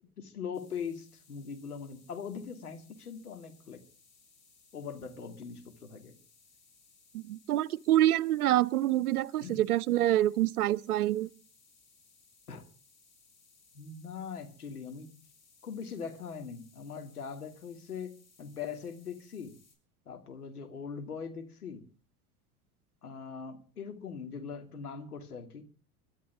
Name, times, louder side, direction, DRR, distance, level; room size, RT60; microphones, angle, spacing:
voice 1, 0.2-3.8 4.7-6.2 9.4-9.6 12.5-12.6 13.7-15.2 15.6-18.1 18.4-19.5 20.1-21.8 23.0-25.6, left 6 dB, 90° left, 2.6 m, -41 dB
sound 1, 0.5-19.8, left 4 dB, 35° left, 6.7 m, -63 dB
voice 2, 7.1-11.3, right 14 dB, 80° right, 0.8 m, -26 dB
23.5 x 13.0 x 3.6 m
hypercardioid pair, 90°, 44 cm